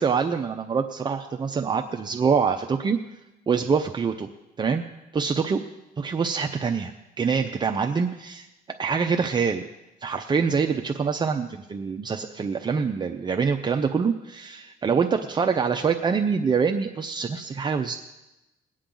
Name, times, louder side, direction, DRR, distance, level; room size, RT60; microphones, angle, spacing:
voice 1, 0.0-3.0 3.5-4.3 4.6-4.8 5.1-5.6 6.0-6.9 7.2-8.5 8.8-9.6 10.0-17.9, right 5 dB, 25° right, 4 dB, 0.6 m, -25 dB
21.0 x 8.6 x 3.9 m, 0.99 s
cardioid pair, 110°, 17 cm